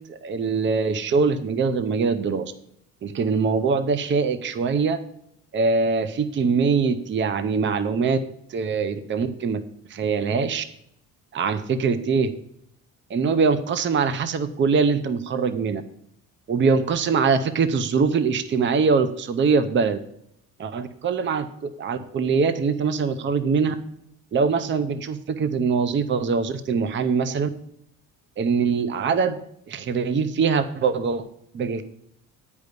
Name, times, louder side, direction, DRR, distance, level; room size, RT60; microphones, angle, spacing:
voice 1, 0.1-2.5 3.0-5.0 5.5-8.2 8.5-9.6 9.9-10.6 11.3-12.3 13.1-15.8 16.5-20.0 20.6-23.7 24.3-27.5 28.4-29.4 29.7-31.2 31.5-31.8, right 5 dB, 35° right, 12 dB, 0.7 m, -23 dB
9.6 x 5.3 x 8.0 m, 0.73 s
cardioid pair, 120°, 34 cm